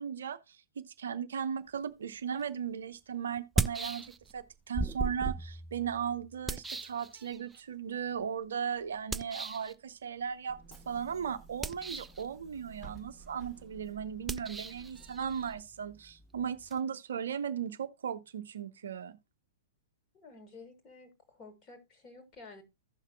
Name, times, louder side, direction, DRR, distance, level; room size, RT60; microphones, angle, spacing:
voice 1, 0.0-19.1, right 7 dB, 60° right, 0.5 m, -37 dB
sound 1, 2.4-2.5 3.4-4.4 4.7-7.6 9.1-9.7 11.5-12.3 14.2-16.8, right 3 dB, 10° right, 0.3 m, -37 dB
Bus / Engine, 10.5-15.6, right 4 dB, 5° left, 1.2 m, -53 dB
voice 2, 20.1-22.6, left 3 dB, 25° left, 1.9 m, -52 dB
15.0 x 5.7 x 2.2 m
figure-of-eight pair, 105°, 0 cm